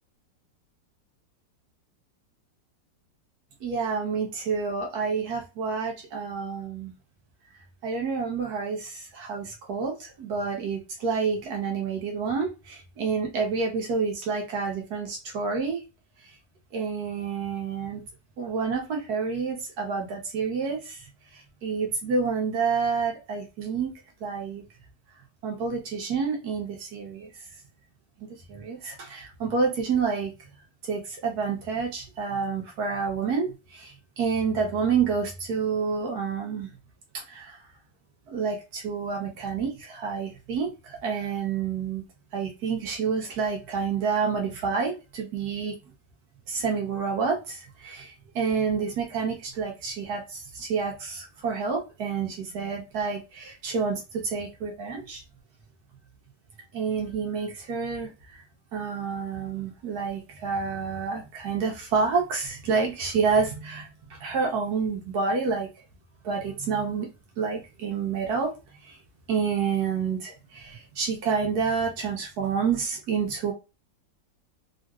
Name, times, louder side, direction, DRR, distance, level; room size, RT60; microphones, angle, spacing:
voice 1, 3.6-6.9 7.8-15.8 16.7-18.0 18.4-21.1 21.6-23.9 24.2-24.6 25.4-27.3 28.2-30.3 30.9-36.7 37.1-37.6 38.3-42.0 42.3-45.7 46.5-55.2 56.7-58.4 58.7-65.7 66.2-67.1 67.4-68.5 68.8-69.0 69.3-73.5, right 5 dB, 60° right, 0 dB, 1.4 m, -29 dB
3.7 x 2.5 x 2.3 m, 0.28 s
omnidirectional pair, 2.0 m